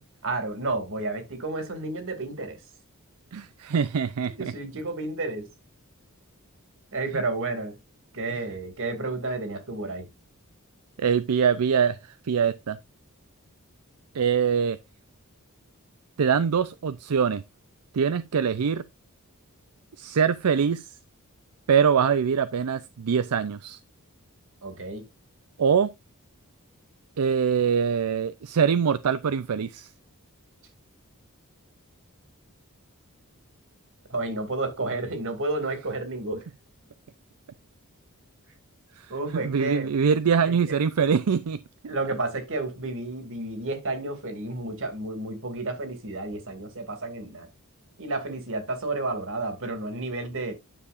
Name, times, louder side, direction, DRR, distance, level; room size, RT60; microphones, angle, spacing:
voice 1, 0.2-2.6 4.4-5.5 6.9-7.8 8.1-10.1 24.6-25.1 34.1-36.5 39.1-39.9 40.5-40.8 41.9-47.5 48.0-50.5, right 2 dB, 60° right, 2.4 m, -31 dB
voice 2, 3.3-4.5 7.1-7.2 11.0-12.8 14.1-14.8 16.2-17.4 17.9-18.8 20.0-20.9 21.7-23.8 25.6-25.9 27.2-29.9 39.0-41.9, right 6 dB, 85° right, 0.5 m, -24 dB
10.0 x 6.8 x 2.5 m
head